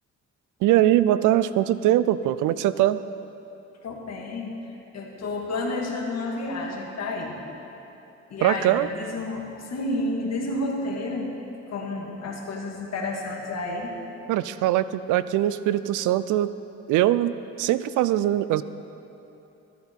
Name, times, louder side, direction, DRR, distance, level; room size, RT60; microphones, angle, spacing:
voice 1, 0.6-3.0 8.4-8.9 14.3-16.5 16.9-18.6, right 13 dB, 85° right, 15 dB, 0.5 m, -22 dB
voice 2, 3.8-4.5 4.9-7.4 8.3-11.3 11.7-13.9, left 2 dB, 60° left, 0 dB, 1.8 m, -30 dB
14.0 x 9.3 x 4.5 m, 2.9 s
cardioid pair, 90°, 30 cm